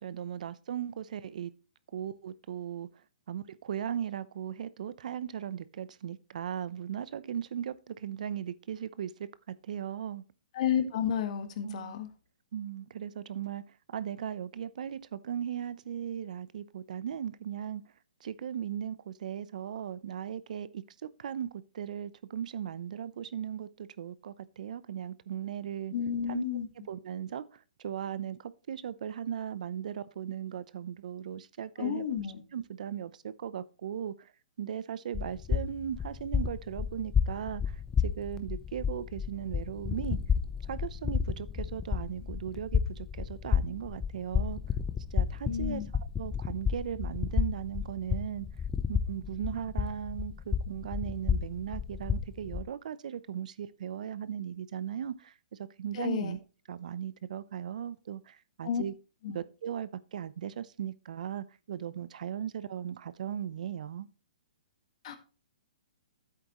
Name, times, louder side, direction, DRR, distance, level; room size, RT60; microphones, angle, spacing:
voice 1, 0.0-1.5 1.9-2.9 3.3-10.2 11.6-12.0 12.5-17.8 18.2-25.9 26.3-26.4 26.9-32.1 32.5-34.3 34.6-40.2 40.6-44.6 45.1-48.5 48.9-56.4 56.7-58.9 59.3-64.1, right 9 dB, 60° right, 0.7 m, -37 dB
voice 2, 10.5-12.1 25.9-26.7 31.8-32.4 45.4-45.9 55.9-56.3 58.6-58.8 59.2-59.4 65.0-65.2, left 8 dB, 45° left, 1.7 m, -31 dB
sound 1, 35.1-52.6, left 7 dB, 10° left, 0.8 m, -32 dB
10.5 x 8.4 x 3.1 m
hypercardioid pair, 155°, 5 cm